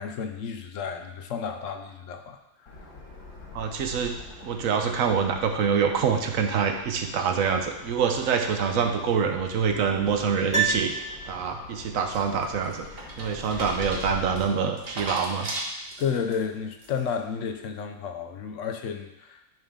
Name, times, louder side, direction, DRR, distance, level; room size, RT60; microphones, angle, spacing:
voice 1, 0.0-2.9 16.0-19.4, left 6 dB, 65° left, 5 dB, 0.9 m, -32 dB
sound 1, 2.7-14.4, left 3 dB, 85° left, 2.1 m, -44 dB
voice 2, 3.5-4.1 4.4-10.9 11.3-12.9 13.2-15.5, right 6 dB, 65° right, 4 dB, 1.1 m, -25 dB
Piano, 10.5-11.8 12.0-12.1, right 5 dB, 5° right, 0.7 m, -28 dB
sound 2, 12.1-16.3 16.8-17.2, right 1 dB, 40° right, 1.5 m, -37 dB
10.5 x 3.8 x 3.7 m, 0.89 s
omnidirectional pair, 1.6 m